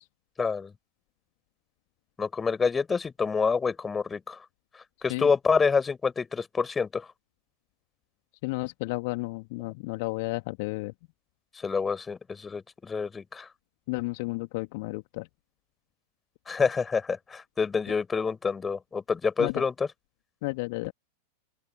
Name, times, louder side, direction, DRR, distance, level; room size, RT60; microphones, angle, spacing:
voice 1, 0.4-0.7 2.2-4.4 5.0-7.1 11.6-13.5 16.5-19.9, left 5 dB, 15° left, 6.5 m, -27 dB
voice 2, 8.4-10.9 13.9-15.3 19.4-19.5 20.4-20.9, left 26 dB, 50° left, 2.1 m, -32 dB
open air
figure-of-eight pair, 90°, 0 cm